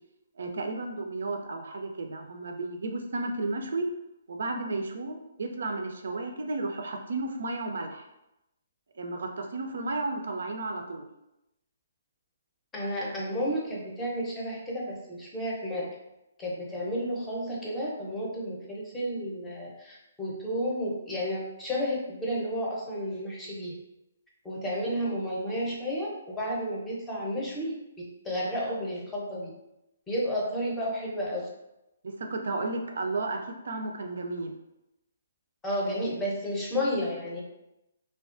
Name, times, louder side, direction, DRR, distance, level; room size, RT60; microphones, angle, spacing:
voice 1, 0.4-3.9 4.3-8.1 9.0-11.1 32.0-34.5, right 2 dB, 70° right, 4 dB, 0.3 m, -33 dB
voice 2, 12.7-15.9 16.4-23.7 24.4-27.7 28.2-29.5 30.1-31.5 35.6-37.4, equal, 10° left, -5 dB, 0.6 m, -32 dB
2.3 x 2.2 x 2.4 m, 0.90 s
hypercardioid pair, 140°, 0 cm